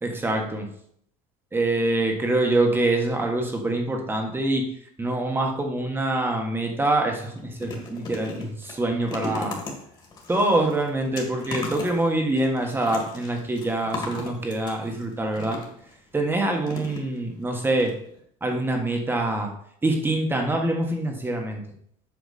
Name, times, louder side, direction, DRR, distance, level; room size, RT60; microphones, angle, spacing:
voice 1, 0.0-0.7 1.5-4.7 5.0-9.6 10.3-15.6 16.1-17.9 18.4-19.5 19.8-21.6, right 2 dB, 10° right, 2 dB, 1.4 m, -25 dB
sound 1, 6.6-6.8 7.1-15.9 16.6-17.4 17.8-17.9 18.2-18.3, left 3 dB, 25° left, 2.1 m, -37 dB
8.4 x 6.0 x 4.2 m, 0.68 s
cardioid pair, 135°, 17 cm